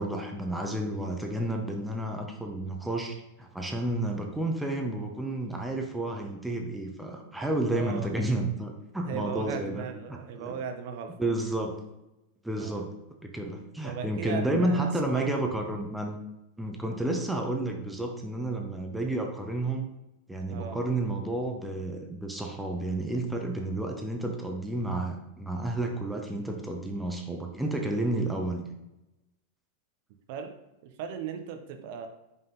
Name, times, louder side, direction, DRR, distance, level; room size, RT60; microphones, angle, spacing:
voice 1, 0.0-10.6 11.2-11.7 12.4-12.9 13.2-16.2 16.6-19.9 20.3-28.7, right 1 dB, 5° right, 2 dB, 0.9 m, -31 dB
voice 2, 7.7-8.1 9.0-11.3 12.6-12.9 13.8-15.4 20.5-20.8 30.3-30.5 30.8-32.1, right 6 dB, 50° right, 6 dB, 0.9 m, -37 dB
5.6 x 5.4 x 3.8 m, 0.93 s
figure-of-eight pair, 90°, 0 cm